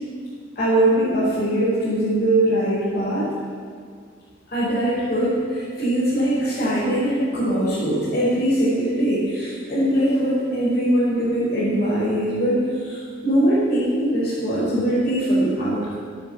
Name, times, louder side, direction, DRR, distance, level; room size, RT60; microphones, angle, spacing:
voice 1, 0.6-3.3 4.5-13.0 13.2-15.9, right 1 dB, 50° left, -11 dB, 5.5 m, -21 dB
14.5 x 12.5 x 7.4 m, 2.1 s
head